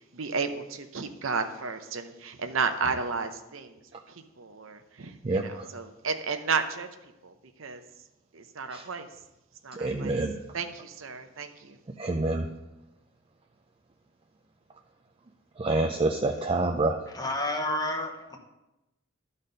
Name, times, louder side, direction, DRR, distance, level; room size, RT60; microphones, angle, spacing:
voice 1, 0.1-3.8 4.1-6.9 7.2-7.3 7.6-7.8 8.3-9.1 9.6-10.1 10.5-11.8, right 5 dB, 75° right, 7 dB, 0.7 m, -32 dB
voice 2, 5.2-5.7 8.7-8.9 9.7-10.3 12.0-12.5 15.6-17.0, right 2 dB, 25° right, 2 dB, 0.4 m, -27 dB
voice 3, 17.1-18.4, left 1 dB, 20° left, 3 dB, 1.0 m, -30 dB
12.0 x 4.2 x 5.1 m, 0.96 s
head